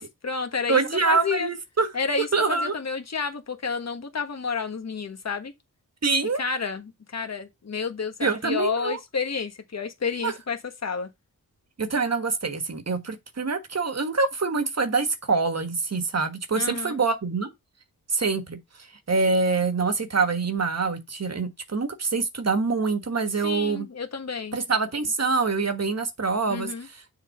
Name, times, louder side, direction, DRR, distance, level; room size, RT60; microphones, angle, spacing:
voice 1, 0.0-1.5 1.9-5.5 6.4-11.1 16.5-17.0 23.4-24.6 26.5-26.9, left 5 dB, 45° left, 1.3 m, -30 dB
voice 2, 0.7-1.9 2.3-2.7 6.0-6.4 8.2-9.0 10.2-10.3 11.8-17.5 18.1-18.6 19.1-23.9 24.5-27.0, right 4 dB, 45° right, 1.4 m, -25 dB
7.2 x 3.7 x 5.8 m
wide cardioid pair, 100°, 35 cm